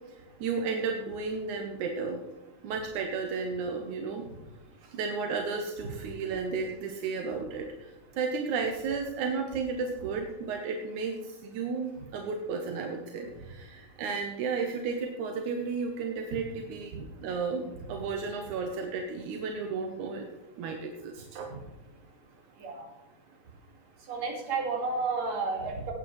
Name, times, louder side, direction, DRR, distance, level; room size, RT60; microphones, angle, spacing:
voice 1, 0.4-2.2 2.6-4.2 4.9-20.3 20.6-21.5, right 4 dB, 85° right, 3 dB, 2.4 m, -33 dB
voice 2, 22.5-22.9 24.0-25.9, right 4 dB, 65° right, 0 dB, 3.4 m, -32 dB
18.0 x 8.8 x 3.2 m, 1.1 s
omnidirectional pair, 3.4 m